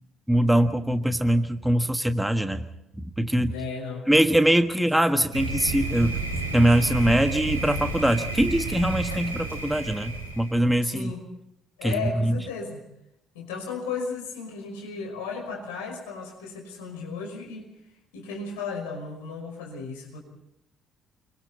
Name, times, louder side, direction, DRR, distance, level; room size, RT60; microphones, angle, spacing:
voice 1, 0.3-2.6 3.2-3.5 4.1-6.2 6.5-11.1 11.8-11.9 12.2-12.3, right 1 dB, 5° right, 8 dB, 1.4 m, -22 dB
voice 2, 3.5-4.0 4.8-5.3 10.8-11.2 11.8-12.8 13.3-17.7 18.1-20.2, left 5 dB, 70° left, 1 dB, 5.7 m, -35 dB
Thunder, 5.3-10.6, right 3 dB, 85° right, 3.6 m, -31 dB
29.5 x 23.5 x 4.2 m, 0.81 s
figure-of-eight pair, 50°, 0 cm